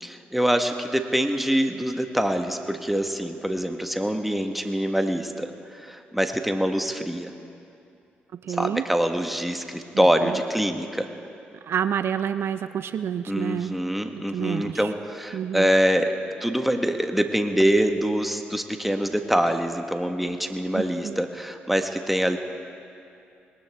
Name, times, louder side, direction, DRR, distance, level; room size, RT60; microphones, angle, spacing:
voice 1, 0.0-7.3 8.5-11.1 13.3-16.1 16.4-22.4, equal, 5° right, 5 dB, 1.5 m, -25 dB
voice 2, 8.5-8.8 9.9-10.4 11.7-13.7 14.1-14.9 15.3-15.7 20.7-21.2, right 8 dB, 65° right, 12 dB, 0.5 m, -29 dB
20.5 x 19.0 x 3.6 m, 2.6 s
supercardioid pair, 55°, 4 cm